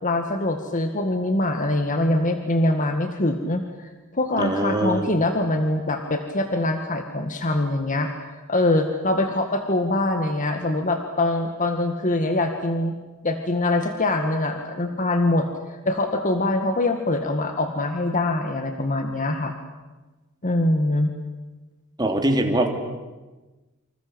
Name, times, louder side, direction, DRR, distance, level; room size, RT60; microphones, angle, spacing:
voice 1, 0.0-8.1 8.5-12.9 13.2-15.5 15.9-19.5 20.4-21.1, left 2 dB, 35° left, 5 dB, 1.9 m, -23 dB
voice 2, 4.4-5.1 22.0-22.7, right 1 dB, 20° right, 3 dB, 3.1 m, -22 dB
28.0 x 26.0 x 8.0 m, 1.2 s
head